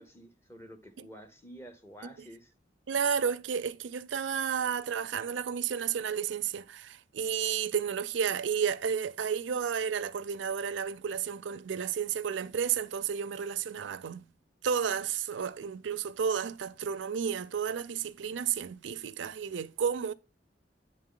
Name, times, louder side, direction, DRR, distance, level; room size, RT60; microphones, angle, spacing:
voice 1, 0.0-2.5, equal, 15° left, 0.7 m, -50 dB
voice 2, 2.9-14.2 14.6-20.1, right 7 dB, 85° right, 0.4 m, -32 dB
9.8 x 3.8 x 3.7 m
head